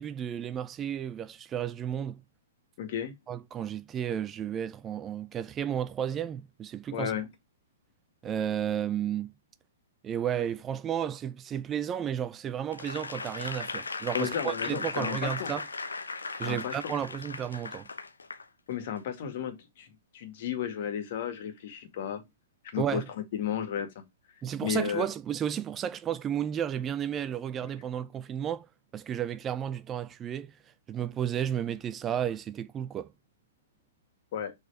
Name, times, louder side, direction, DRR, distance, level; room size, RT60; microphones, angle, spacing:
voice 1, 0.0-2.2 3.3-7.1 8.2-9.3 10.0-15.7 16.4-17.9 22.8-23.1 24.4-28.7 28.9-30.5 30.9-33.1, right 9 dB, 20° right, 0.4 m, -32 dB
voice 2, 2.8-3.1 6.9-7.3 14.1-15.5 16.5-16.9 18.7-19.9 20.1-22.2 22.7-23.0 23.3-24.0 24.6-25.1 34.3-34.5, left 9 dB, 50° left, 2.0 m, -33 dB
Applause / Crowd, 12.7-18.4 19.0-19.1, left 4 dB, 75° left, 0.9 m, -37 dB
6.6 x 4.1 x 4.7 m
figure-of-eight pair, 115°, 0 cm